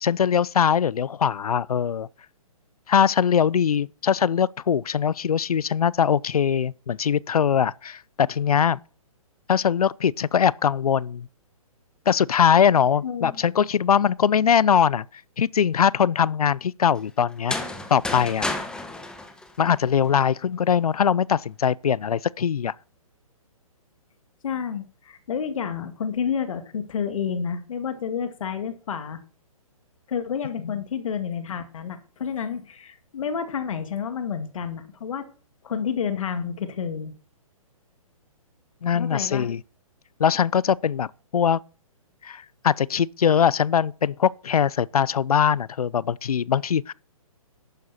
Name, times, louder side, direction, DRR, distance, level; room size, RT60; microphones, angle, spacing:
voice 1, 0.0-2.1 2.9-8.8 9.5-11.3 12.1-15.1 15.4-17.6 17.9-18.5 19.6-22.7 38.8-39.6 40.2-41.6 42.2-46.9, left 8 dB, 85° left, 0.5 m, -21 dB
voice 2, 13.0-13.4 24.4-29.2 30.1-35.3 35.6-37.1 38.9-39.5, left 7 dB, 65° left, 2.1 m, -30 dB
sound 1, 17.3-20.2, left 2 dB, 5° left, 1.5 m, -32 dB
11.5 x 9.5 x 4.2 m
hypercardioid pair, 135°, 19 cm